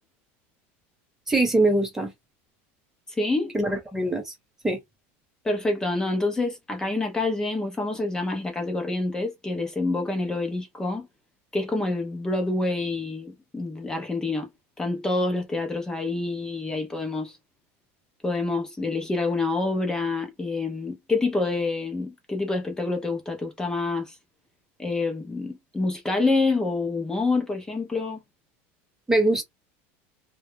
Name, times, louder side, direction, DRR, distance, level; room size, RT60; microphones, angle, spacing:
voice 1, 1.3-2.1 3.5-4.3 4.6-4.8 29.1-29.4, right 2 dB, 5° right, 0.9 m, -22 dB
voice 2, 3.1-3.5 5.4-11.1 11.5-14.5 14.8-17.4 18.2-24.2 24.8-28.2, left 3 dB, 10° left, 0.6 m, -27 dB
2.2 x 2.0 x 3.3 m
supercardioid pair, 150°, 6 cm